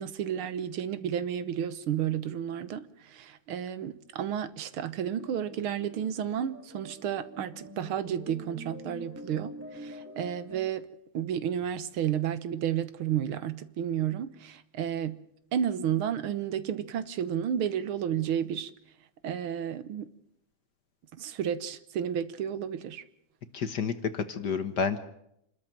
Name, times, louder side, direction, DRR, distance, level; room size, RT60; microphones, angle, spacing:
voice 1, 0.0-10.9 11.1-15.2 15.5-18.7 19.2-20.1 21.1-23.0, right 9 dB, 70° right, 1.9 m, -32 dB
sound 1, 5.2-10.7, equal, 5° right, 2.8 m, -46 dB
voice 2, 23.5-25.0, left 6 dB, 55° left, 1.5 m, -30 dB
27.5 x 13.0 x 9.0 m
omnidirectional pair, 2.4 m